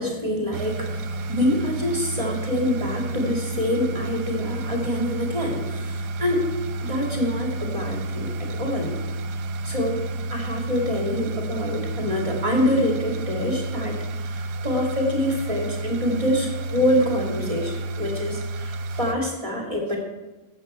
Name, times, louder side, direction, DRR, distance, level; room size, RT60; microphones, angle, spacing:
voice 1, 0.0-20.0, left 1 dB, 20° right, -1 dB, 2.4 m, -26 dB
sound 1, 0.5-19.1, right 2 dB, 80° right, 1.2 m, -31 dB
13.5 x 8.2 x 4.4 m, 1.1 s
omnidirectional pair, 1.7 m